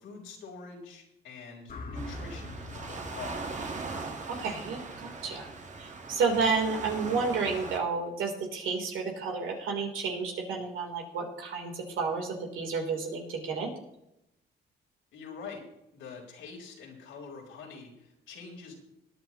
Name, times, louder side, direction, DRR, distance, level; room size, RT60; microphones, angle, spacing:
voice 1, 0.0-3.6 15.1-15.6 15.9-18.7, left 4 dB, 85° left, -1 dB, 4.1 m, -45 dB
sound 1, 1.7-5.9, left 2 dB, 45° left, 1.7 m, -45 dB
Waves surf, 1.9-7.8, right 3 dB, 35° right, 1.7 m, -40 dB
voice 2, 4.3-5.5 5.8-13.7, right 4 dB, 85° right, 1 dB, 3.6 m, -31 dB
21.0 x 9.6 x 3.1 m, 0.85 s
cardioid pair, 90°, 20 cm